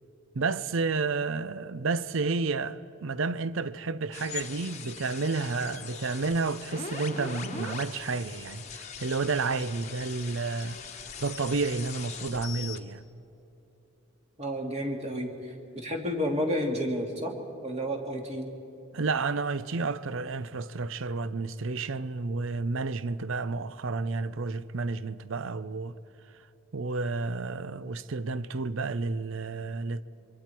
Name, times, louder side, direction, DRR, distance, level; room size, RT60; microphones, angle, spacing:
voice 1, 0.3-10.8 11.2-13.0 18.9-25.9 26.7-30.0, right 4 dB, 60° right, 0.6 m, -31 dB
sound 1, 4.1-12.8, left 6 dB, 30° left, 1.2 m, -41 dB
voice 2, 14.4-17.3 17.6-18.5, equal, 30° right, 2.3 m, -31 dB
26.0 x 24.0 x 4.5 m
head